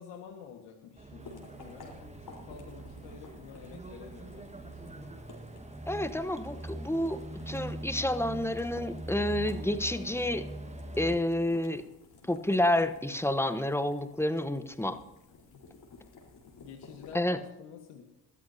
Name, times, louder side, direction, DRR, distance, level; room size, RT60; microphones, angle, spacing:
voice 1, 0.0-4.9 15.5-15.6 16.6-18.0, left 7 dB, 85° left, 2 dB, 1.7 m, -49 dB
sound 1, 1.0-11.2, right 1 dB, 15° right, 1.5 m, -42 dB
sound 2, 1.2-17.1, left 3 dB, 60° left, 4.2 m, -55 dB
voice 2, 5.9-7.2 7.5-10.4 11.0-11.8 12.3-15.0 17.1-17.4, left 1 dB, 5° left, 10 dB, 1.1 m, -29 dB
22.5 x 13.5 x 2.8 m, 1.0 s
supercardioid pair, 65°, 41 cm